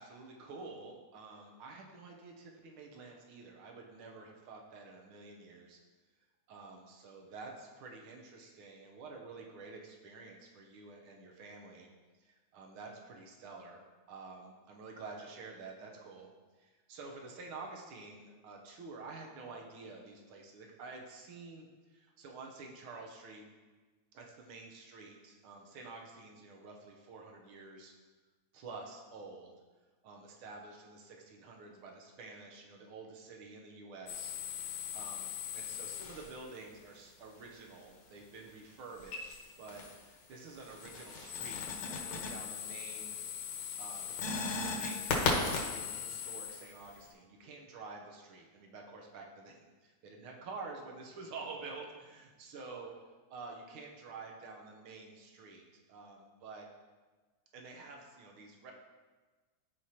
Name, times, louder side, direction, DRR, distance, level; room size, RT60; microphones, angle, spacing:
voice 1, 0.0-5.8 6.5-11.9 12.2-16.3 16.6-23.5 24.1-27.9 28.5-29.5 30.0-34.3 34.9-43.2 43.8-56.7 57.5-58.7, right 3 dB, 70° right, 1 dB, 1.3 m, -49 dB
sound 1, 34.1-36.6 39.0-40.0 40.4-47.1, left 4 dB, 70° left, 2.3 m, -38 dB
13.5 x 4.8 x 2.9 m, 1.3 s
omnidirectional pair, 3.4 m